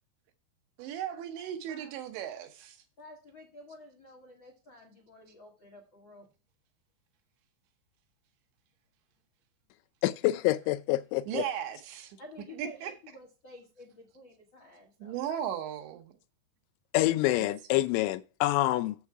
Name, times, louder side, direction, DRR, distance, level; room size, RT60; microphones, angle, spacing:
voice 1, 0.8-2.8 11.3-12.2 12.5-12.9 15.0-16.1 17.4-17.5, right 10 dB, 75° right, 3.2 m, -36 dB
voice 2, 3.0-6.3 12.2-15.2, left 2 dB, 75° left, 1.1 m, -51 dB
voice 3, 10.0-11.4 16.9-19.0, left 17 dB, 90° left, 3.0 m, -27 dB
7.4 x 7.2 x 4.7 m
omnidirectional pair, 5.3 m